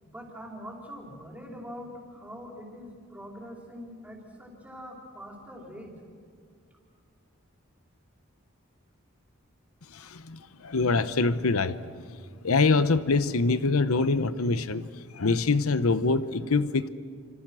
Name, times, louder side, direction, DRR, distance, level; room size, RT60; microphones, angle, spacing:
voice 1, 0.1-5.9, equal, 5° right, -1 dB, 4.6 m, -43 dB
voice 2, 9.9-11.9 12.4-14.9 15.1-16.9, left 3 dB, 85° left, 13 dB, 0.9 m, -24 dB
30.0 x 26.0 x 6.3 m, 2.2 s
head